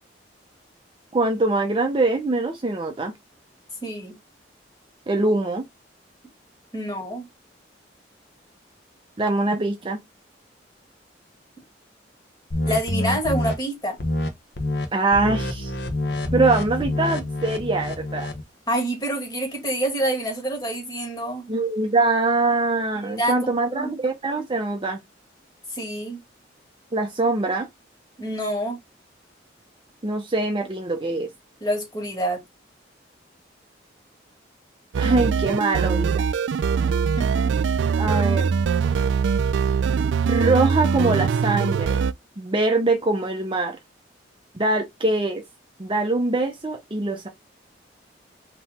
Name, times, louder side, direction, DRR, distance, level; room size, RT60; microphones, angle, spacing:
voice 1, 1.1-3.1 5.1-5.6 9.2-10.0 14.9-15.7 16.3-18.3 21.5-25.0 26.9-27.7 30.0-31.3 35.0-36.2 38.0-38.5 40.3-42.0 42.4-43.8 44.5-45.4 45.8-47.3, right 2 dB, 25° right, 0.6 m, -23 dB
voice 2, 3.8-4.2 6.7-7.3 12.7-14.0 18.7-21.5 23.0-23.4 23.7-23.9 25.7-26.2 28.2-28.8 31.6-32.4 37.2-37.5, right 1 dB, 20° left, 2.0 m, -27 dB
sound 1, 12.5-13.5 14.0-14.3 14.6-14.9 15.1-18.4, left 1 dB, 65° left, 0.9 m, -26 dB
sound 2, 34.9-42.1, right 6 dB, 75° right, 0.3 m, -22 dB
3.8 x 2.9 x 4.2 m
head